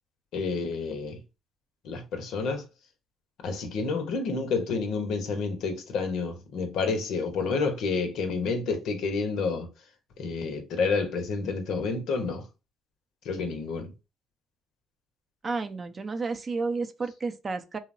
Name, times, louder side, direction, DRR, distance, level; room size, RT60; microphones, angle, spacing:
voice 1, 0.3-1.2 1.8-2.6 3.4-9.7 10.2-12.4 13.2-13.9, left 4 dB, 70° left, 0.6 m, -29 dB
voice 2, 15.4-17.8, right 4 dB, 35° right, 0.4 m, -31 dB
2.8 x 2.0 x 2.5 m
supercardioid pair, 70°, 0 cm